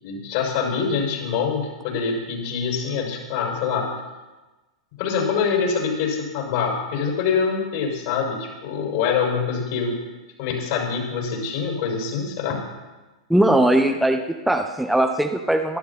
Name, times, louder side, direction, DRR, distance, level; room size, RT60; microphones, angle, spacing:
voice 1, 0.0-3.9 5.0-10.0 10.4-12.6, left 6 dB, 50° left, 1 dB, 6.5 m, -25 dB
voice 2, 13.3-15.8, right 1 dB, ahead, 4 dB, 1.0 m, -20 dB
21.5 x 11.5 x 4.5 m, 1.2 s
figure-of-eight pair, 95°, 3 cm